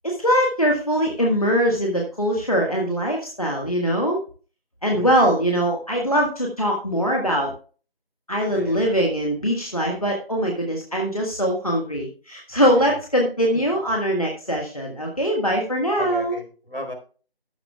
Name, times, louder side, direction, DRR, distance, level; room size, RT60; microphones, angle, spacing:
voice 1, 0.0-4.2 4.8-7.5 8.3-16.4, equal, 35° left, -1 dB, 1.5 m, -22 dB
voice 2, 4.9-5.2 8.5-8.8 12.7-13.0 16.0-16.9, equal, 70° left, 3 dB, 4.1 m, -35 dB
13.0 x 11.0 x 2.3 m, 0.38 s
figure-of-eight pair, 175°, 30 cm